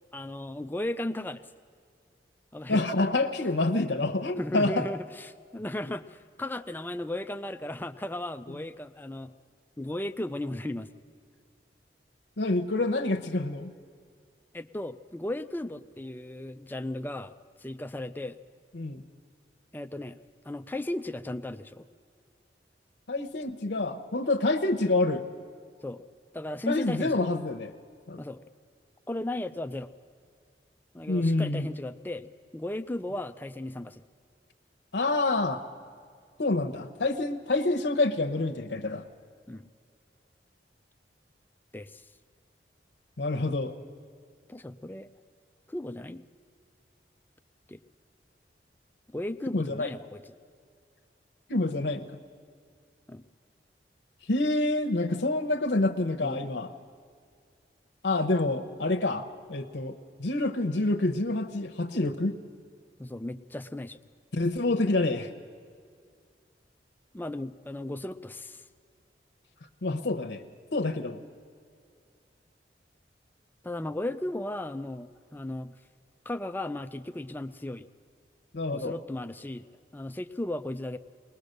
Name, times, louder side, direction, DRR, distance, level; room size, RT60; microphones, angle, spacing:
voice 1, 0.1-1.4 2.5-2.8 4.4-9.3 9.8-10.9 14.5-17.3 17.6-18.4 19.7-20.2 20.4-21.9 25.8-26.0 26.3-27.2 28.2-28.4 29.1-29.9 30.9-34.0 39.5-39.7 41.7-42.0 44.5-45.1 45.7-46.2 47.7-47.8 49.1-50.2 53.1-53.3 56.2-56.5 63.0-64.0 67.1-68.6 73.6-75.7 76.3-77.9 78.7-79.7 79.9-81.0, left 1 dB, 10° left, 10 dB, 0.5 m, -35 dB
voice 2, 2.7-4.9 12.4-13.7 18.7-19.0 23.1-25.2 26.7-27.7 28.1-28.2 31.1-31.7 34.9-35.6 36.4-39.0 43.2-43.7 49.5-49.9 51.5-52.1 54.3-56.7 58.0-62.4 64.3-65.3 69.8-70.4 70.7-71.2 78.5-78.9, left 2 dB, 85° left, 6 dB, 0.9 m, -27 dB
20.5 x 20.0 x 6.6 m, 2.2 s
head